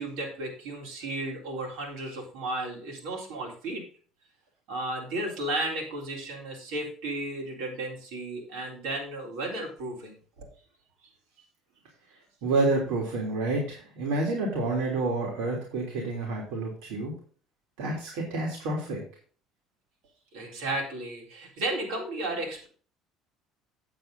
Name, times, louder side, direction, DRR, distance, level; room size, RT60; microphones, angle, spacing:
voice 1, 0.0-3.8 4.7-10.2 20.3-22.7, right 2 dB, 70° right, -1 dB, 4.0 m, -34 dB
voice 2, 12.4-17.1 17.8-19.0, right 2 dB, 85° right, -1 dB, 3.2 m, -29 dB
8.9 x 8.1 x 3.8 m, 0.40 s
cardioid pair, 180°, 0 cm